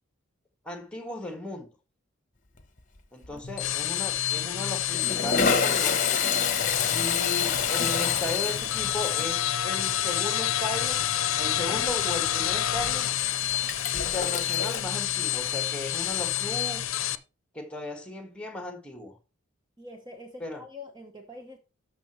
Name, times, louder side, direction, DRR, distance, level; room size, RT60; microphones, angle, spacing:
voice 1, 0.6-1.7 3.1-6.0 6.9-11.0 11.3-13.1 13.9-16.9 17.5-19.2 20.4-20.6, left 2 dB, 5° left, 1.6 m, -36 dB
Toilet flush, 2.6-3.0 3.2-3.4 4.4-14.8, left 5 dB, 35° left, 1.0 m, -30 dB
voice 2, 3.3-3.6 19.8-21.6, left 2 dB, 20° right, 1.0 m, -45 dB
sound 1, 3.4-17.1, left 11 dB, 75° left, 0.6 m, -28 dB
13.0 x 5.9 x 3.1 m
head